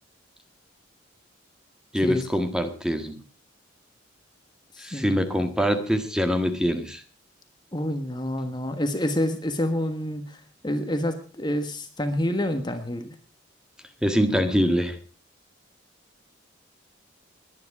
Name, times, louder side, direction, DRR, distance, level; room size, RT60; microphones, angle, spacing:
voice 1, 1.9-3.2 4.8-7.0 14.0-15.0, equal, 5° right, 7 dB, 1.7 m, -24 dB
voice 2, 7.7-10.4 10.6-13.1, left 1 dB, 20° left, 8 dB, 1.4 m, -27 dB
21.0 x 10.0 x 4.8 m, 0.38 s
head